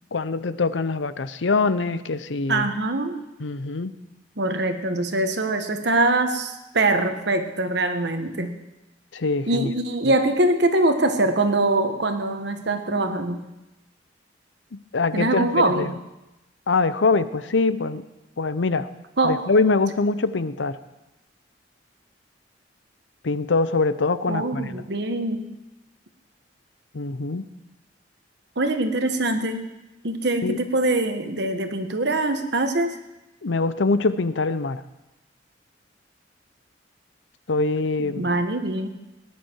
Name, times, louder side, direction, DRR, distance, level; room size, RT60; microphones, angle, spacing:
voice 1, 0.1-2.7 3.4-3.9 9.1-9.7 10.0-10.1 14.7-15.9 16.7-18.0 18.4-18.9 19.2-20.8 23.2-24.8 26.9-27.5 30.4-30.6 33.4-34.8 37.5-38.3, left 3 dB, 80° left, 14 dB, 0.7 m, -23 dB
voice 2, 2.5-3.2 4.4-8.5 9.5-13.5 15.1-15.9 19.2-19.4 24.3-25.5 28.6-29.7 30.0-33.0 38.0-38.9, right 2 dB, 65° right, 7 dB, 1.3 m, -23 dB
18.5 x 10.5 x 4.6 m, 0.99 s
head